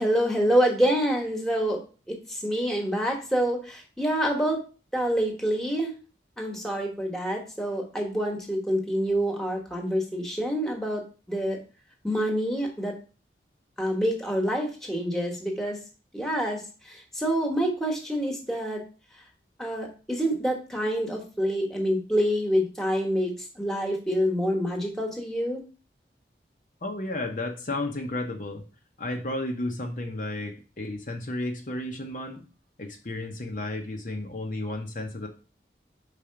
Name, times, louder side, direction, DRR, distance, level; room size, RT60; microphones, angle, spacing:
voice 1, 0.0-1.8 2.1-4.6 4.9-5.9 6.4-11.0 11.3-11.6 12.0-12.9 13.8-15.8 16.1-18.8 19.6-25.6, equal, 5° left, 1 dB, 1.3 m, -27 dB
voice 2, 26.8-28.6 29.0-32.4 32.8-35.3, left 2 dB, 45° left, 2 dB, 0.8 m, -33 dB
5.0 x 4.1 x 5.7 m, 0.35 s
head